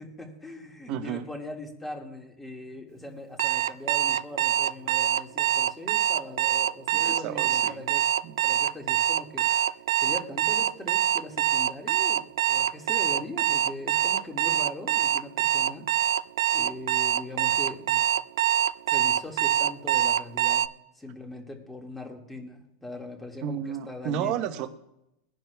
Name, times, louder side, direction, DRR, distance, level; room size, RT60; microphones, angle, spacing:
voice 1, 0.0-8.1 8.4-9.5 9.9-15.9 16.5-18.0 18.9-20.7 21.0-23.6 23.9-24.4, left 2 dB, 5° left, 2 dB, 1.9 m, -40 dB
voice 2, 0.9-1.3 6.9-7.8 8.2-8.3 23.4-24.7, right 9 dB, 40° right, 8 dB, 1.1 m, -32 dB
Alarm, 3.4-20.7, right 11 dB, 85° right, 0.4 m, -24 dB
22.0 x 10.5 x 2.3 m, 0.84 s
supercardioid pair, 150°, 2 cm